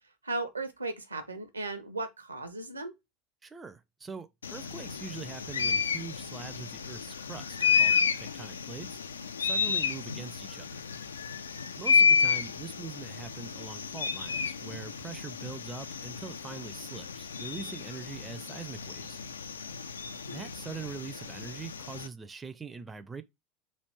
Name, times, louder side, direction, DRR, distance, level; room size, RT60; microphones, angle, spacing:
voice 1, 0.2-2.9 20.3-20.5, right 2 dB, 85° right, 0.6 m, -36 dB
voice 2, 3.4-9.0 9.4-10.7 11.8-19.2 20.3-23.2, right 5 dB, 20° right, 0.4 m, -43 dB
sound 1, 4.4-22.1, left 6 dB, 75° left, 0.3 m, -31 dB
3.2 x 2.4 x 3.3 m
figure-of-eight pair, 75°, 0 cm